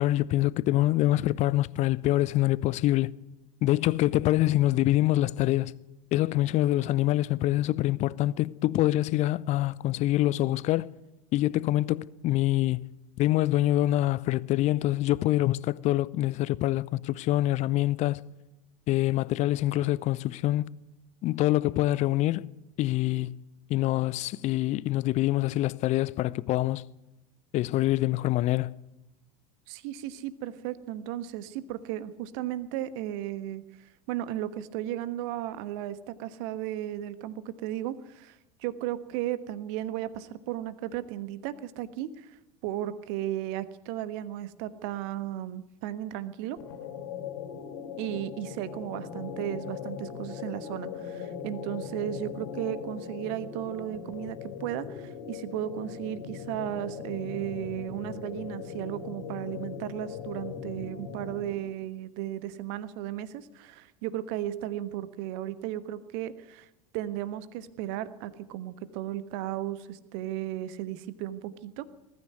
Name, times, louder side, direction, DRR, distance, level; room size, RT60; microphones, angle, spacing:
voice 1, 0.0-3.1 3.6-5.7 6.1-10.9 11.3-12.8 13.2-18.2 18.9-20.7 21.2-22.5 22.8-23.3 23.7-26.8 27.5-28.7, left 15 dB, 35° left, 0.7 m, -25 dB
voice 2, 29.7-42.4 42.6-46.6 48.0-66.7 66.9-71.8, right 13 dB, 50° right, 1.3 m, -35 dB
sound 1, 46.6-61.7, left 7 dB, 55° left, 3.3 m, -39 dB
21.5 x 13.5 x 9.5 m
figure-of-eight pair, 75°, 20 cm